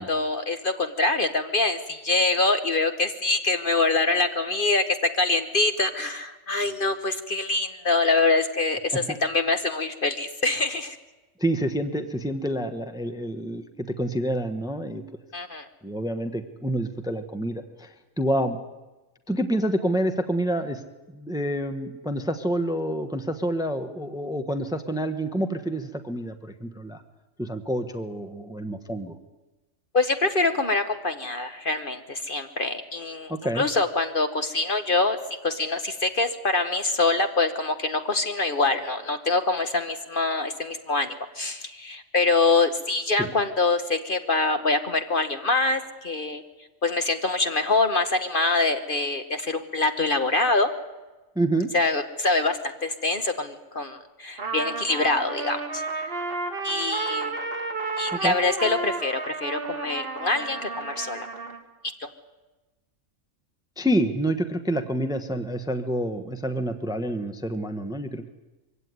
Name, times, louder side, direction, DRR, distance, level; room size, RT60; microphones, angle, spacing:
voice 1, 0.0-11.0 15.3-15.7 29.9-35.2 35.4-46.4 46.8-50.7 51.7-56.1 56.6-57.4 58.0-61.3, left 3 dB, 40° left, 8 dB, 1.3 m, -25 dB
voice 2, 11.4-15.0 15.8-18.6 19.3-20.8 21.1-27.0 27.4-29.1 33.3-33.7 43.2-43.3 51.3-51.7 58.1-58.3 63.8-68.3, right 1 dB, 5° right, 8 dB, 1.1 m, -28 dB
Trumpet, 54.4-61.6, right 3 dB, 45° right, 1.8 m, -32 dB
23.5 x 16.5 x 9.6 m, 1.1 s
omnidirectional pair, 1.4 m